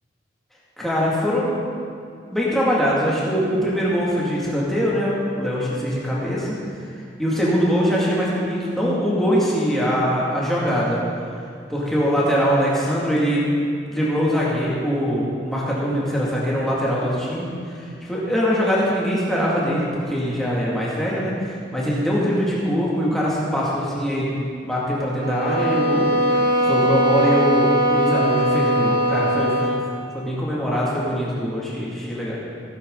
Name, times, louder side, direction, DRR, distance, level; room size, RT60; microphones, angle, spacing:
voice 1, 0.8-1.6 2.3-6.8 7.2-11.0 11.7-13.5 13.9-24.3 24.6-29.8 30.1-32.3, equal, ahead, -7 dB, 2.4 m, -22 dB
sound 1, 25.2-29.9, equal, 55° right, 1.9 m, -20 dB
16.0 x 9.8 x 4.0 m, 2.3 s
head